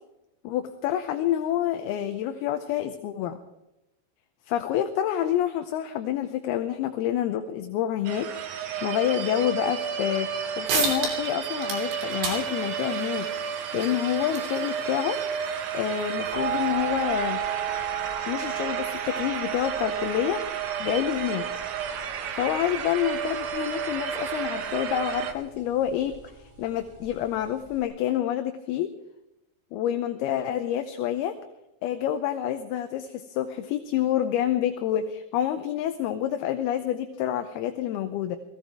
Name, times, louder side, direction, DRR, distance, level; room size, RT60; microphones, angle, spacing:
voice 1, 0.4-3.4 4.5-15.2 15.7-17.4 18.3-21.5 22.3-26.1 26.4-28.9 29.7-31.4 31.8-38.4, left 11 dB, 75° left, 8 dB, 2.6 m, -28 dB
sound 1, 8.1-25.3, right 8 dB, 65° right, 2.0 m, -32 dB
sound 2, 10.3-10.4 10.7-11.3 11.6-16.7, right 4 dB, 85° right, 5.4 m, -34 dB
sound 3, 16.3-27.8, right 9 dB, 45° right, 0.4 m, -36 dB
19.5 x 15.5 x 4.6 m, 0.93 s
omnidirectional pair, 4.8 m